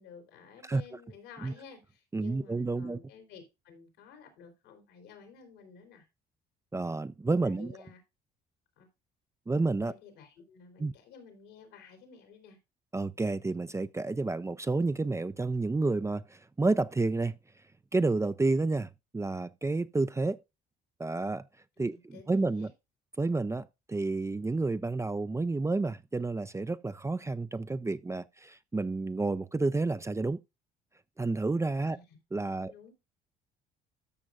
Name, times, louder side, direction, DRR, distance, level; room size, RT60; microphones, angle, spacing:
voice 1, 0.0-6.1 7.4-8.0 8.8-8.9 9.8-12.6 21.8-22.7 31.9-32.0 32.6-32.9, left 6 dB, 85° left, 3.6 m, -52 dB
voice 2, 2.1-3.0 6.7-7.7 9.5-9.9 10.8-10.9 12.9-17.3 17.9-20.4 21.0-21.4 21.8-22.7 23.2-30.4 31.2-32.0 32.3-32.7, right 3 dB, 15° right, 0.5 m, -30 dB
13.5 x 6.3 x 2.4 m
supercardioid pair, 65°, 20 cm